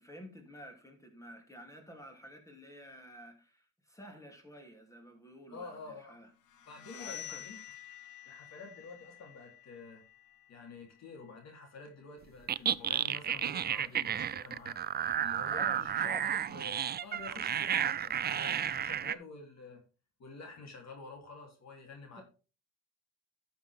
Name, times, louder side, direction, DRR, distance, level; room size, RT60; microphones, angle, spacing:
voice 1, 0.0-6.3 6.9-7.5 15.5-16.3 22.2-22.3, equal, 10° left, 2.9 m, -50 dB
voice 2, 5.5-6.2 6.7-7.6 8.3-10.0 10.5-14.8 15.2-19.8 20.2-22.2, left 4 dB, 60° left, 3.3 m, -49 dB
sound 1, 6.5-12.1, left 12 dB, 85° left, 1.3 m, -50 dB
sound 2, 12.5-19.1, right 9 dB, 35° right, 0.4 m, -32 dB
12.0 x 7.0 x 3.5 m
cardioid pair, 90°, 30 cm